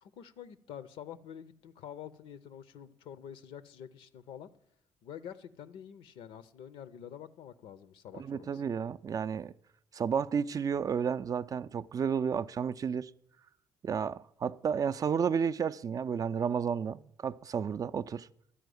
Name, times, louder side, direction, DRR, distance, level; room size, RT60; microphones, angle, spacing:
voice 1, 0.0-4.5 5.0-8.6, left 9 dB, 65° left, 0.6 m, -47 dB
voice 2, 8.2-9.5 9.9-13.1 13.8-18.3, right 7 dB, 35° right, 0.4 m, -32 dB
11.5 x 4.7 x 7.7 m
hypercardioid pair, 50°, 10 cm